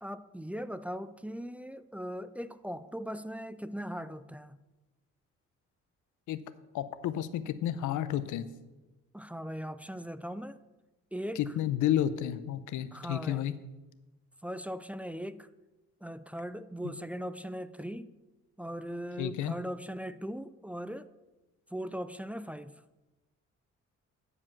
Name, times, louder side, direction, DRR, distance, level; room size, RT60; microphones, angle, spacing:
voice 1, 0.0-4.6 9.1-10.6 11.1-11.5 12.9-13.5 14.4-15.5 16.0-18.1 18.6-21.1 21.7-22.8, equal, 5° right, 0.3 m, -39 dB
voice 2, 6.7-8.5 11.4-13.5 19.2-19.5, left 11 dB, 80° left, 0.7 m, -31 dB
9.8 x 4.9 x 7.2 m
cardioid pair, 90°, 30 cm